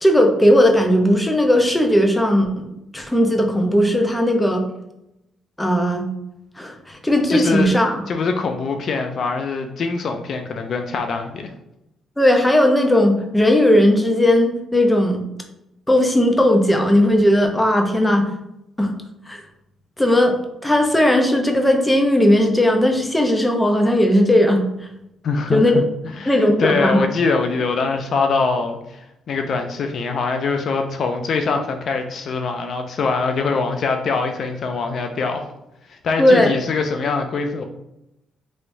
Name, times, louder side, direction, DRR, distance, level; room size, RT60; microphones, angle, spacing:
voice 1, 0.0-2.5 2.9-4.6 5.6-6.1 6.6-8.0 12.2-15.2 15.9-18.3 18.8-18.9 19.3-19.4 20.0-24.9 25.5-25.8 26.3-27.1 36.2-36.5, left 1 dB, 10° left, 3 dB, 0.6 m, -17 dB
voice 2, 7.3-7.7 8.1-11.5 25.2-25.8 26.2-35.5 35.9-37.6, left 4 dB, 60° left, 5 dB, 0.4 m, -23 dB
3.1 x 2.9 x 2.6 m, 0.84 s
cardioid pair, 90°, 0 cm